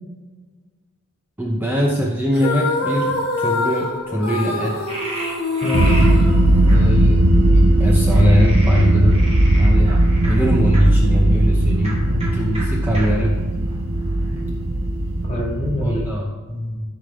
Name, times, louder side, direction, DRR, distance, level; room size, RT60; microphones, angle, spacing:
voice 1, 1.4-4.8 6.7-7.2 7.5-13.4 15.8-16.3, equal, 10° right, -2 dB, 0.7 m, -21 dB
sound 1, 2.3-7.2, left 3 dB, 50° left, 1.2 m, -25 dB
Frog, 4.9-6.1 6.7-6.8 8.1-10.8 11.8-11.9 12.2-12.3 12.5-12.6 12.9-13.1 13.7-14.4, right 1 dB, 30° right, 2.1 m, -32 dB
voice 2, 5.6-6.0 12.1-12.3 14.3-14.5 15.2-16.0 16.5-16.8, equal, 30° left, -3 dB, 2.5 m, -26 dB
sound 2, 5.7-16.0, right 1 dB, 90° right, 1.0 m, -17 dB
13.0 x 5.1 x 3.5 m, 1.4 s
head